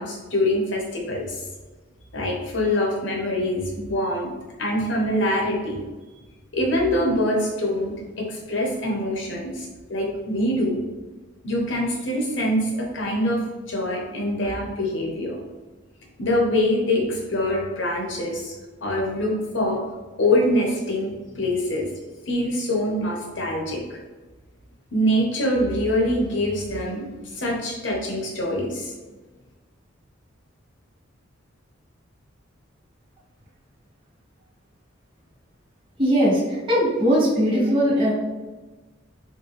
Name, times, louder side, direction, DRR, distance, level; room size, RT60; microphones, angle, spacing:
voice 1, 0.0-1.4 2.1-4.3 4.6-5.8 6.5-10.8 11.4-15.4 16.2-18.5 18.8-19.8 20.2-21.9 22.3-24.0 24.9-28.9, left 1 dB, 65° left, -1 dB, 0.9 m, -24 dB
voice 2, 36.0-38.1, equal, 25° right, -8 dB, 1.4 m, -20 dB
4.4 x 2.2 x 3.2 m, 1.2 s
head